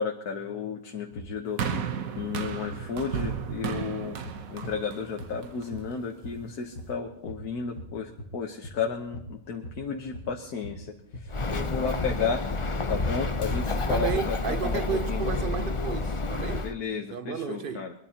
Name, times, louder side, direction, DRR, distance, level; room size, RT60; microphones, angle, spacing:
voice 1, 0.0-1.9 2.2-4.2 4.5-12.4 12.9-15.3 16.6-17.9, left 5 dB, 85° left, 1.6 m, -33 dB
sound 1, 1.1-1.3 1.6-1.9 2.2-8.4 8.6-13.6, left 1 dB, 70° left, 1.9 m, -41 dB
sound 2, 1.6-5.9 6.7-6.8, right 7 dB, 70° right, 1.4 m, -34 dB
Bird, 11.3-16.7, left 3 dB, 30° left, 0.6 m, -29 dB
voice 2, 13.9-16.7 17.1-17.9, right 7 dB, 45° right, 0.8 m, -32 dB
22.5 x 22.0 x 2.9 m
omnidirectional pair, 1.6 m